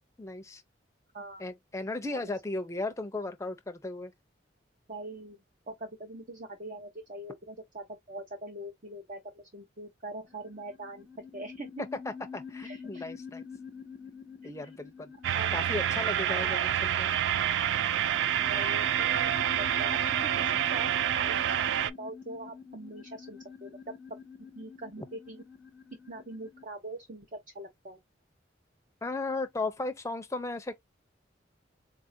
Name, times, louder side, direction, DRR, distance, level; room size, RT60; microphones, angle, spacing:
voice 1, 0.2-0.6 1.4-4.1 12.1-13.4 14.4-15.1 15.5-17.1 29.0-30.7, left 2 dB, 15° left, 0.6 m, -36 dB
voice 2, 1.1-1.5 2.1-2.3 4.9-5.4 5.7-11.1 11.3-11.8 12.6-13.0 14.6-14.7 15.3-15.6 16.3-16.6 18.5-20.9 21.2-21.7 22.0-24.2 24.5-25.4 26.1-28.0, right 2 dB, 45° right, 0.8 m, -42 dB
sound 1, 10.3-26.6, left 6 dB, 5° right, 0.8 m, -46 dB
sound 2, 15.2-21.9, right 10 dB, 75° right, 0.3 m, -28 dB
4.1 x 2.5 x 2.6 m
head